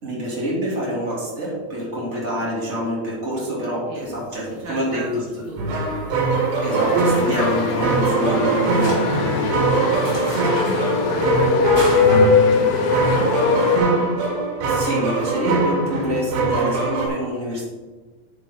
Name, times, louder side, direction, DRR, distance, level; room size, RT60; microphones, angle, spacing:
voice 1, 0.0-5.1 6.6-9.7 12.6-12.8 14.6-17.6, equal, 20° right, -5 dB, 2.4 m, -26 dB
sound 1, 4.0-13.1, equal, 5° left, 2.4 m, -39 dB
voice 2, 4.6-5.1 5.4-6.2 10.4-14.0, right 2 dB, 75° right, -3 dB, 1.5 m, -37 dB
sound 2, 5.6-17.1, right 3 dB, 90° right, 4.0 m, -22 dB
sound 3, 6.7-13.8, left 5 dB, 65° left, 2.6 m, -21 dB
8.9 x 8.7 x 3.8 m, 1.3 s
omnidirectional pair, 4.8 m